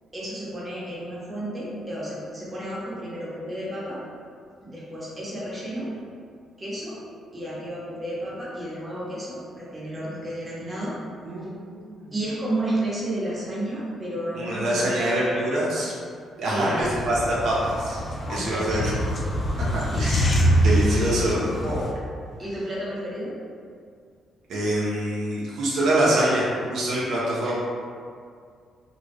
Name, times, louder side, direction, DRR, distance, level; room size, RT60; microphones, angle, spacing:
voice 1, 0.1-4.0 4.6-5.9 6.6-7.0 7.3-11.0 12.1-15.1 16.5-17.0 18.3-19.0 19.9-20.0 20.5-20.6 20.9-21.3 22.4-23.4 27.4-27.5, right 1 dB, 20° right, -7 dB, 0.8 m, -32 dB
voice 2, 11.2-12.1 14.3-16.0 16.4-18.0 18.3-18.8 19.6-20.3 20.6-21.9 24.5-26.4 26.7-27.5, right 1 dB, 75° right, -6 dB, 0.5 m, -25 dB
sound 1, 16.8-21.9, equal, 35° left, 0.3 m, -24 dB
2.2 x 2.0 x 3.3 m, 2.2 s
cardioid pair, 90°, 0 cm